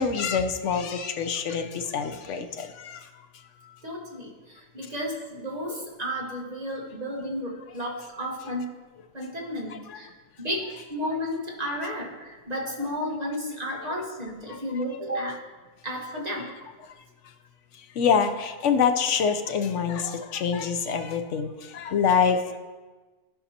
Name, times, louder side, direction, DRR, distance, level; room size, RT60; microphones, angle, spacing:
voice 1, 0.0-3.1 3.6-3.8 9.7-10.0 14.5-14.6 17.9-22.6, left 6 dB, 65° left, 8 dB, 0.9 m, -26 dB
voice 2, 3.8-8.7 9.1-10.1 10.4-15.4 15.8-16.5, equal, 30° right, -2 dB, 1.1 m, -32 dB
14.5 x 5.5 x 2.8 m, 1.3 s
omnidirectional pair, 1.4 m